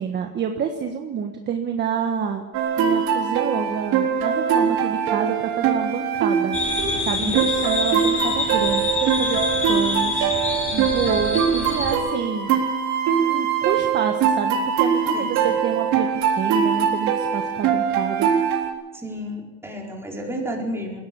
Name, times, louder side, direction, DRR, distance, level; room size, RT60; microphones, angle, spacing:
voice 1, 0.0-2.4 2.8-6.6 7.0-9.4 9.7-12.5 13.2-16.1 16.4-18.3, right 7 dB, 30° right, 4 dB, 1.5 m, -28 dB
sound 1, 2.5-18.7, right 7 dB, 55° right, 3.9 m, -22 dB
sound 2, 6.5-11.9, left 4 dB, 20° left, 6.0 m, -26 dB
voice 2, 15.1-15.6 19.0-21.0, equal, 10° right, -2 dB, 4.7 m, -32 dB
22.0 x 16.5 x 7.1 m, 1.1 s
cardioid pair, 140°, 33 cm